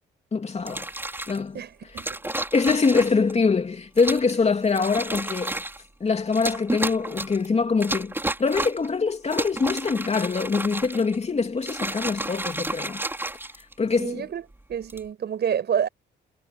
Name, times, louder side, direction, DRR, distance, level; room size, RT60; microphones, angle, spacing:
voice 1, 0.3-1.6 2.5-5.6 6.0-8.1 8.4-13.0 13.8-14.2, left 4 dB, 35° left, 3.1 m, -24 dB
sound 1, 0.6-1.4 2.0-3.3 4.0-4.3 4.7-5.8 6.3-7.5 7.8-8.9 9.2-11.2 11.6-14.0 14.7-15.1, right 1 dB, 10° right, 6.0 m, -31 dB
voice 2, 1.5-2.3 14.0-14.4 14.7-15.9, right 8 dB, 60° right, 6.0 m, -28 dB
cardioid pair, 90°, 20 cm